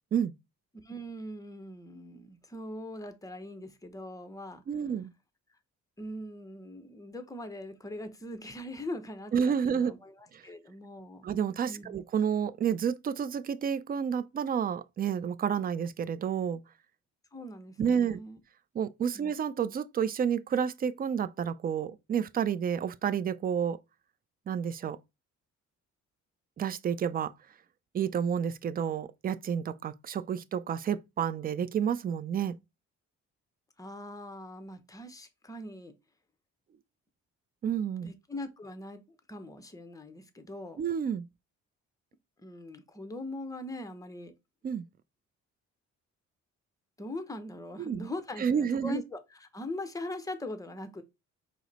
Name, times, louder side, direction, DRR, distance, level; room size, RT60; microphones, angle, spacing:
voice 1, 0.8-4.6 6.0-11.3 11.7-12.0 17.3-18.4 19.1-19.3 33.8-36.0 38.0-39.0 39.3-40.8 42.4-44.3 47.0-51.0, left 1 dB, 10° left, 0.8 m, -41 dB
voice 2, 4.7-5.1 9.3-9.9 10.3-10.4 11.2-16.6 17.8-18.2 18.7-23.8 24.5-25.0 26.6-27.3 27.9-32.5 37.6-38.1 40.8-41.2 44.6-44.8 47.8-48.1 48.4-49.0, right 7 dB, 30° right, 0.4 m, -30 dB
4.8 x 2.1 x 4.0 m
cardioid pair, 90°, 30 cm